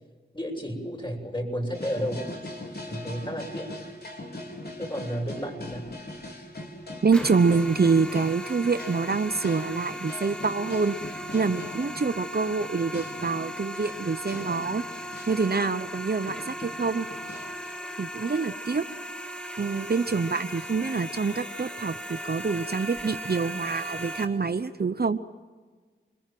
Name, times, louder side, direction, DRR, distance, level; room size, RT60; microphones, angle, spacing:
voice 1, 0.3-2.3 2.9-3.7 4.8-5.9, equal, 25° left, 1 dB, 7.6 m, -32 dB
sound 1, 1.7-15.4 15.9-16.0 16.3-17.8, left 1 dB, 55° left, 4.7 m, -41 dB
voice 2, 7.0-11.0 11.3-17.1 18.0-18.8 19.6-25.2, right 4 dB, 55° right, 11 dB, 0.9 m, -26 dB
sound 2, 7.1-24.2, equal, 5° left, 6.1 m, -38 dB
29.0 x 21.5 x 7.8 m, 1.4 s
wide cardioid pair, 50°, 20 cm